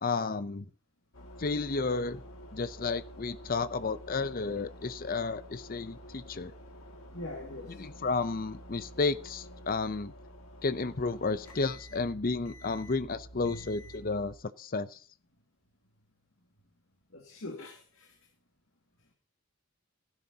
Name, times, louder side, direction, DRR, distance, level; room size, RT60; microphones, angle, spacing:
voice 1, 0.0-0.6 1.4-2.2 2.5-6.5 7.7-10.1 10.6-15.0, left 3 dB, 40° left, 13 dB, 0.6 m, -32 dB
sound 1, 1.1-14.3, equal, 90° left, 2.2 m, -49 dB
voice 2, 7.1-7.8 17.1-18.1, left 2 dB, 70° left, 1 dB, 2.2 m, -42 dB
15.5 x 11.0 x 2.9 m, 0.42 s
head